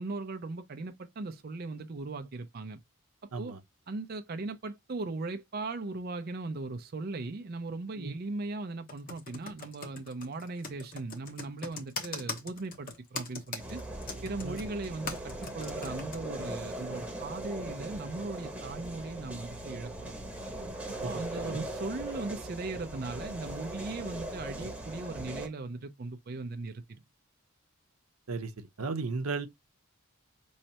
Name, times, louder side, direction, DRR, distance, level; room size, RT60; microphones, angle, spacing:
voice 1, 0.0-2.8 3.4-3.5 3.9-13.8 14.2-20.2 20.9-27.0, right 3 dB, 45° right, 0.5 m, -38 dB
Computer keyboard, 8.9-16.2, left 4 dB, 40° left, 1.0 m, -40 dB
sound 1, 13.6-25.5, right 1 dB, 5° right, 0.9 m, -40 dB
voice 2, 28.3-29.5, right 4 dB, 85° right, 0.7 m, -35 dB
5.4 x 3.2 x 2.8 m
head